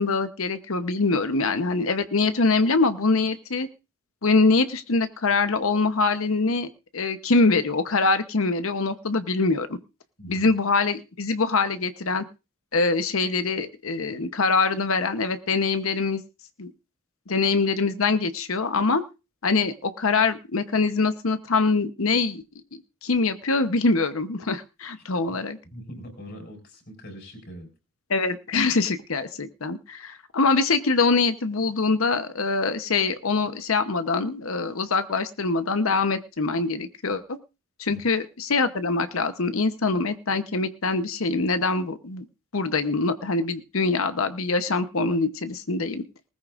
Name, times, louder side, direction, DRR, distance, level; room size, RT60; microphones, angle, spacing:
voice 1, 0.0-3.7 4.2-9.8 10.3-12.2 12.7-16.2 16.6-16.7 17.3-19.0 19.4-22.4 22.7-25.6 28.1-37.4 37.8-42.2 42.5-46.0, left 3 dB, 75° left, 10 dB, 0.9 m, -24 dB
voice 2, 10.2-10.5 25.6-27.7 37.9-38.0, equal, 50° left, 3 dB, 4.9 m, -41 dB
20.0 x 14.0 x 2.5 m, 0.29 s
head